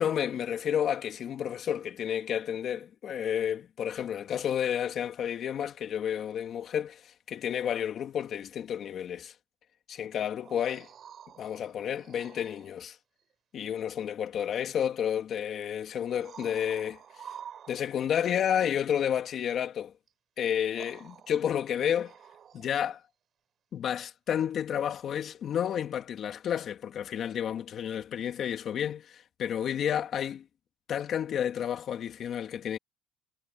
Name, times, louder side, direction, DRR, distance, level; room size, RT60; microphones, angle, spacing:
voice 1, 0.0-9.3 9.9-10.9 11.4-13.0 13.5-17.3 17.7-19.9 20.4-22.1 22.5-23.0 23.7-30.4 30.9-32.8, left 9 dB, 45° left, 2.7 m, -31 dB
sound 1, 10.2-12.8 14.6-14.7 16.0-18.2 20.1-20.2 20.7-22.9 26.0-26.1, right 8 dB, 40° right, 5.8 m, -49 dB
cardioid pair, 130°, 0 cm